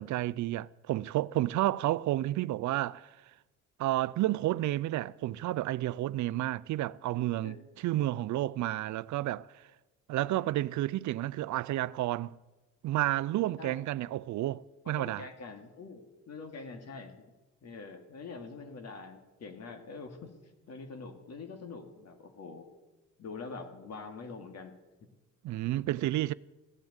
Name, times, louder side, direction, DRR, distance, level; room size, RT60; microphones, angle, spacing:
voice 1, 0.0-3.1 3.8-9.5 10.1-12.3 12.8-15.3 25.4-26.3, right 15 dB, 70° right, 0.5 m, -31 dB
voice 2, 14.8-17.3 17.6-20.3 20.7-22.6 23.2-24.7, left 4 dB, 60° left, 2.5 m, -44 dB
16.5 x 10.5 x 8.1 m
cardioid pair, 90°, 30 cm